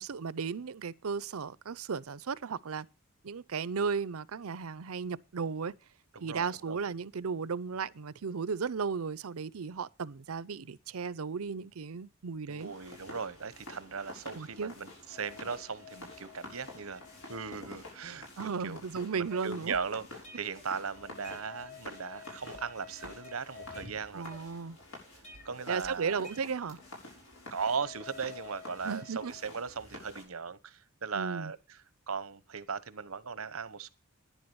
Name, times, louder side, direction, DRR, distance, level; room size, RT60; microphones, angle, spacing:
voice 1, 0.0-2.9 3.2-5.7 6.2-12.7 14.4-14.7 18.4-19.8 24.1-24.8 25.7-26.8 28.8-29.3 31.1-31.5, right 5 dB, 90° right, 0.6 m, -35 dB
voice 2, 6.1-6.8 12.5-17.0 17.3-18.8 19.2-20.0 20.3-24.3 25.4-26.3 27.5-31.8 32.1-33.9, right 5 dB, 75° right, 1.0 m, -38 dB
sound 1, 12.6-30.2, left 3 dB, 80° left, 7.1 m, -49 dB
sound 2, 19.3-20.7 21.0-21.9 22.2-22.7 23.0-24.8 25.2-26.9, equal, 35° left, 6.8 m, -54 dB
11.0 x 10.5 x 7.0 m
head